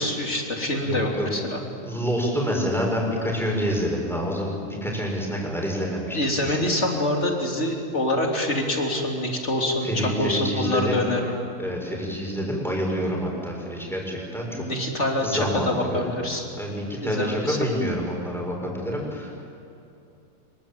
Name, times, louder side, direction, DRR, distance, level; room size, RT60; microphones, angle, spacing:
voice 1, 0.0-1.6 6.1-11.3 14.5-16.4 17.0-17.6, left 1 dB, 35° left, 1 dB, 3.8 m, -25 dB
voice 2, 0.8-1.3 1.8-6.6 9.8-11.1 11.6-14.6 15.2-16.1 16.6-19.4, equal, ahead, -1 dB, 6.6 m, -27 dB
26.0 x 24.0 x 9.1 m, 2.7 s
omnidirectional pair, 2.2 m